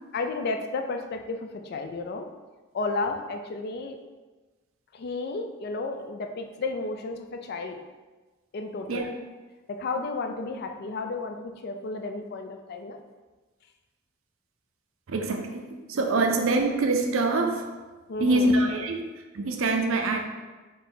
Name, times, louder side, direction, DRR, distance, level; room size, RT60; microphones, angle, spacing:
voice 1, 0.1-2.3 2.7-4.0 4.9-7.8 8.5-9.1 9.7-13.0 16.1-16.3 18.1-18.5, left 3 dB, 50° left, 5 dB, 0.3 m, -32 dB
voice 2, 15.1-17.6 18.2-19.0 19.3-20.2, right 2 dB, 70° right, 4 dB, 0.5 m, -24 dB
4.0 x 2.7 x 3.7 m, 1.3 s
head